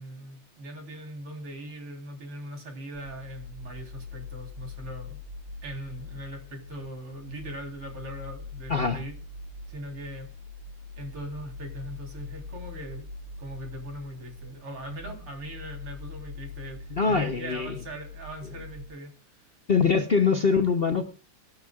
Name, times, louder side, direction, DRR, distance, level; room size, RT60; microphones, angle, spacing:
voice 1, 0.0-5.2 5.6-9.2 9.7-10.3 11.0-13.1 13.4-19.5, right 1 dB, 80° right, 2 dB, 4.5 m, -40 dB
sound 1, 2.9-18.9, left 3 dB, 35° right, 3.1 m, -42 dB
voice 2, 16.9-17.8 19.7-21.0, left 5 dB, 65° left, 6 dB, 0.5 m, -23 dB
25.0 x 9.4 x 2.4 m, 0.34 s
omnidirectional pair, 2.4 m